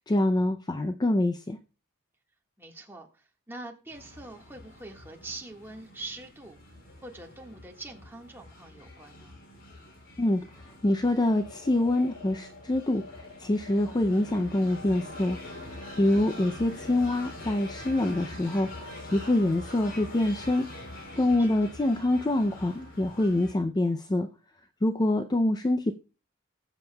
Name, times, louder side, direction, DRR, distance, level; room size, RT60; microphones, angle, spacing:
voice 1, 0.1-1.6 10.2-10.4 10.8-15.7 16.0-20.7 21.2-24.3 24.8-25.9, left 1 dB, 20° left, 0.4 m, -25 dB
voice 2, 2.6-6.6 7.0-9.4 21.4-21.7, right 2 dB, 10° right, 1.5 m, -44 dB
sound 1, 3.9-23.5, left 1 dB, 60° left, 2.9 m, -45 dB
sound 2, 11.2-20.6, left 3 dB, 40° left, 1.8 m, -49 dB
20.5 x 7.2 x 2.2 m
head